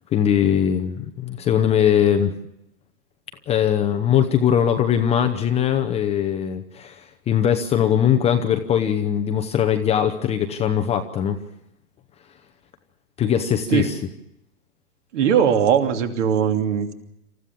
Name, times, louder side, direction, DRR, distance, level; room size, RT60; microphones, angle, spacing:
voice 1, 0.1-2.3 3.5-11.4 13.2-14.0, left 9 dB, 15° left, 6 dB, 0.9 m, -21 dB
voice 2, 15.1-16.9, right 8 dB, 50° right, 5 dB, 3.1 m, -19 dB
27.5 x 14.5 x 7.0 m, 0.81 s
hypercardioid pair, 130°, 46 cm